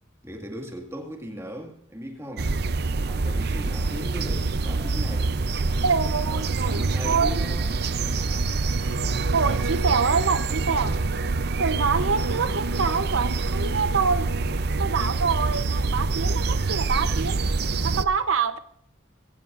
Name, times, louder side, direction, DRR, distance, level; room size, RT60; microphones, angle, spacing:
voice 1, 0.2-2.6 3.1-5.3 6.2-7.7, equal, 15° right, 2.1 m, -38 dB
sound 1, 2.4-18.0, right 3 dB, 55° right, 0.6 m, -26 dB
voice 2, 5.8-7.4 9.3-11.0 11.6-14.3 14.8-17.4 17.8-18.6, right 5 dB, 85° right, 0.8 m, -25 dB
23.0 x 16.5 x 2.6 m
head